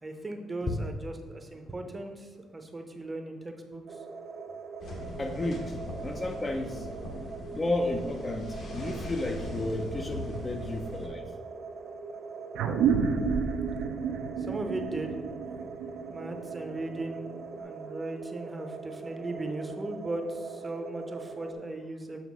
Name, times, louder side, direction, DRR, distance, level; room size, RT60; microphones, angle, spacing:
voice 1, 0.0-3.8 14.4-15.1 15.4-15.5 16.1-22.2, right 2 dB, 15° right, 5 dB, 0.7 m, -37 dB
sound 1, 3.9-21.5, right 4 dB, 45° right, 0.9 m, -42 dB
sound 2, 4.8-11.1, left 1 dB, 55° left, 1.5 m, -40 dB
voice 2, 5.2-5.7 6.0-6.9 7.5-11.3, left 2 dB, 25° left, 4 dB, 0.5 m, -32 dB
sound 3, 12.5-17.4, right 6 dB, 85° right, 0.6 m, -30 dB
7.3 x 3.4 x 6.1 m, 1.4 s
cardioid pair, 145°, 0 cm